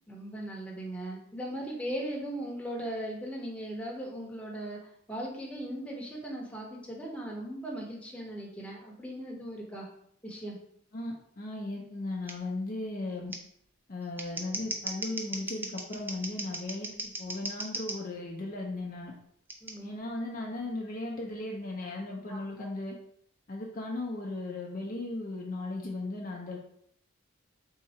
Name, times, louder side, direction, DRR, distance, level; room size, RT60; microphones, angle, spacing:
voice 1, 0.1-4.8 5.1-9.9 10.2-10.6 19.6-19.9 22.3-22.7, right 1 dB, 5° left, -3 dB, 0.8 m, -38 dB
voice 2, 10.9-13.3 13.9-19.1 19.8-22.9 23.5-26.6, left 2 dB, 40° left, -1 dB, 0.5 m, -36 dB
Scissors, 12.3-12.4 13.3-13.4 14.0-18.0 19.5-19.7, right 2 dB, 10° right, 0.3 m, -37 dB
3.7 x 2.8 x 4.2 m, 0.69 s
head